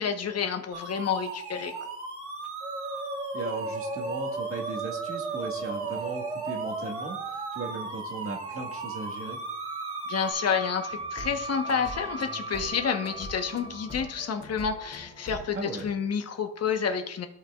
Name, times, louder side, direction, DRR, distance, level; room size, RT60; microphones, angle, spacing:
voice 1, 0.0-1.9 10.1-17.3, left 6 dB, 55° left, 6 dB, 1.1 m, -29 dB
sound 1, 0.7-10.3, right 3 dB, 75° right, 2.6 m, -38 dB
Musical instrument, 2.6-14.4, right 3 dB, 20° right, 0.6 m, -37 dB
voice 2, 3.3-9.4 15.5-15.9, right 3 dB, 45° right, 0 dB, 1.7 m, -37 dB
sound 2, 10.9-15.9, equal, 30° left, 2.7 m, -44 dB
15.0 x 5.7 x 2.4 m, 0.78 s
cardioid pair, 90°, 30 cm